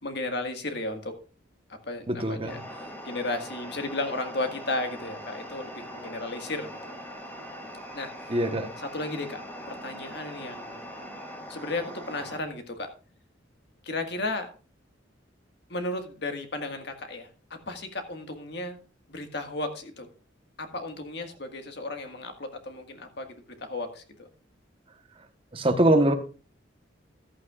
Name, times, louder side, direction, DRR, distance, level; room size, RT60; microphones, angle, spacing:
voice 1, 0.0-1.1 1.8-7.0 7.9-8.4 8.8-10.9 11.5-12.9 13.8-14.5 15.7-17.3 17.7-18.8 19.1-20.1 20.6-24.3, left 2 dB, 60° left, 5 dB, 1.7 m, -34 dB
voice 2, 2.1-2.6 8.3-8.7 25.5-26.1, right 1 dB, 30° right, 6 dB, 1.2 m, -23 dB
sound 1, 2.5-12.4, equal, 10° left, 2.7 m, -41 dB
14.5 x 11.5 x 2.4 m, 0.37 s
head